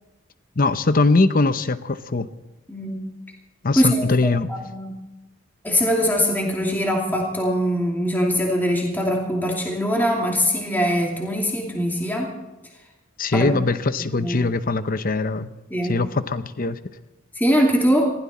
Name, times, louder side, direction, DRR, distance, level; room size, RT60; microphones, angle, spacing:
voice 1, 0.6-2.3 3.6-4.5 13.2-15.5 15.9-16.8, left 3 dB, 45° left, 0.8 m, -21 dB
voice 2, 3.8-4.9 5.6-12.3 13.3-13.5 14.1-14.4 15.7-15.9 17.4-18.1, equal, 10° left, 2.6 m, -22 dB
21.0 x 16.0 x 4.2 m
head